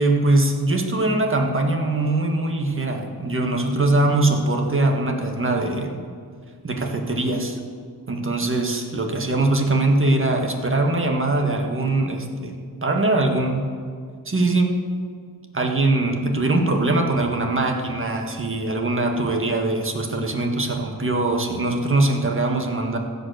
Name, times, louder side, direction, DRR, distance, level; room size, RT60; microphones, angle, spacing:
voice 1, 0.0-6.0 6.6-7.6 8.1-13.7 14.3-14.8 15.5-23.0, right 2 dB, 30° right, 3 dB, 1.7 m, -22 dB
15.5 x 5.4 x 6.4 m, 2.1 s
cardioid pair, 70°, 40 cm